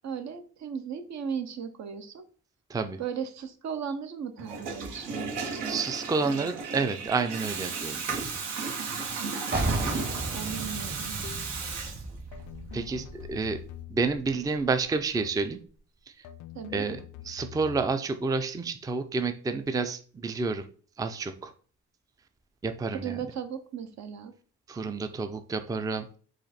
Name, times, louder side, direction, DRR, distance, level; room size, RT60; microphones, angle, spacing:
voice 1, 0.0-2.3 3.0-5.8 9.2-9.5 10.3-11.2 16.5-16.9 23.0-24.3, right 7 dB, 65° right, 8 dB, 0.8 m, -36 dB
Water tap faucet / Toilet flush, 4.4-12.4, right 4 dB, 90° right, 1.5 m, -34 dB
voice 2, 5.7-8.3 12.7-13.6 13.9-15.6 16.7-20.7 21.0-21.5 22.6-23.2 24.7-26.1, right 4 dB, 10° right, 8 dB, 0.4 m, -29 dB
sound 1, 9.5-15.1, right 2 dB, 35° right, 1.1 m, -35 dB
sound 2, 11.2-11.7 12.3-14.3 15.2-15.6 16.2-18.0, left 13 dB, 75° left, 0.5 m, -45 dB
5.0 x 2.5 x 4.1 m, 0.42 s
cardioid pair, 90°, 30 cm